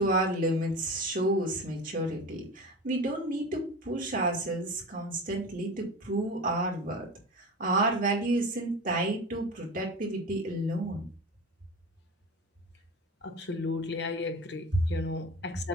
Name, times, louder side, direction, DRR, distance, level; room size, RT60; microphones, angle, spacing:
voice 1, 0.0-7.1 7.6-11.0, right 1 dB, 50° right, 2.3 m, -30 dB
voice 2, 13.2-15.7, left 3 dB, 65° left, 0.8 m, -34 dB
7.5 x 2.8 x 5.8 m
head